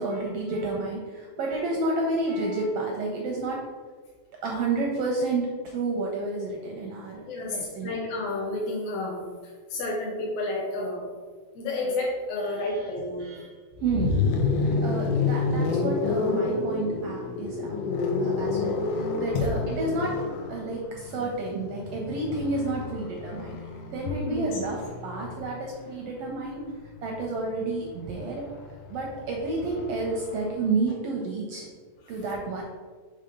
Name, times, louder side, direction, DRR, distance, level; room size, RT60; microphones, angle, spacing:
voice 1, 0.0-3.6 4.4-7.2 7.5-8.0 12.6-12.7 13.2-13.5 13.8-14.2 14.6-17.7 18.2-20.1 20.5-23.6 23.9-26.6 27.0-28.4 28.9-31.7 32.1-32.6, right 3 dB, 75° right, -1 dB, 1.5 m, -30 dB
voice 2, 7.3-11.1 11.6-13.4 14.7-15.0 19.3-19.5 24.0-24.6 32.0-32.2, left 2 dB, 65° left, -3 dB, 1.8 m, -31 dB
sound 1, 13.7-25.7 27.0-30.6, left 4 dB, 85° left, 2.3 m, -29 dB
5.6 x 3.5 x 5.1 m, 1.5 s
omnidirectional pair, 3.5 m